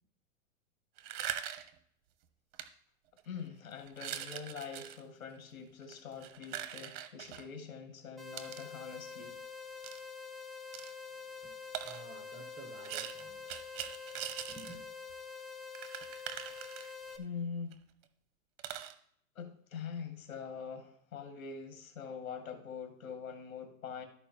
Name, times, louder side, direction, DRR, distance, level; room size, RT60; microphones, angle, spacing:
sound 1, 1.0-1.8 2.5-2.6 3.2-3.4 3.9-5.0 5.8-7.4 8.4-8.6 9.8-10.0 10.7-10.9 11.7-12.0 12.8-14.8 15.1-15.2 15.4-15.5 15.7-17.2 17.7-17.8 18.0-18.1 18.6-18.9, right 11 dB, 45° right, 1.1 m, -42 dB
voice 1, 3.2-9.4 17.2-17.8 19.4-24.1, left 6 dB, 80° left, 2.3 m, -44 dB
sound 2, 8.2-17.2, left 5 dB, ahead, 0.9 m, -46 dB
voice 2, 11.1-14.9, right 5 dB, 15° right, 1.5 m, -54 dB
12.5 x 4.8 x 4.6 m
hypercardioid pair, 130°, 41 cm